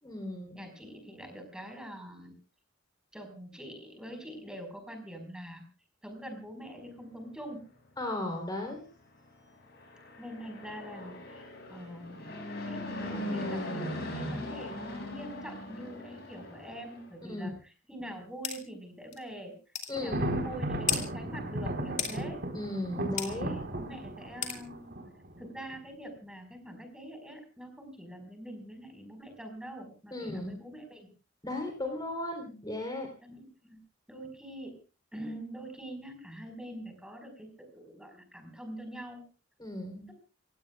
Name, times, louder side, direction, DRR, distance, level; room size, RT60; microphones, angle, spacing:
voice 1, 0.0-0.6 8.0-8.8 17.3-17.5 19.9-20.4 22.5-23.6 30.1-30.5 31.4-33.1 39.6-40.1, left 1 dB, 20° left, 2 dB, 3.6 m, -36 dB
voice 2, 0.5-2.3 3.1-5.6 6.0-7.6 10.2-11.4 11.7-12.4 12.6-19.5 19.9-22.4 23.2-25.0 25.4-31.1 33.2-33.8 34.1-34.7 35.1-39.2, equal, 5° right, 5 dB, 4.8 m, -44 dB
Fixed-wing aircraft airplane, 9.7-17.1, left 1 dB, 55° left, 6.7 m, -39 dB
sound 1, 18.4-18.6 19.1-19.2 19.7-19.9 20.9-21.0 22.0-22.2 23.2-23.3 24.4-24.6, left 8 dB, 40° left, 2.9 m, -31 dB
Thunder, 20.0-25.8, right 1 dB, 60° right, 4.2 m, -35 dB
29.0 x 16.5 x 2.4 m, 0.34 s
head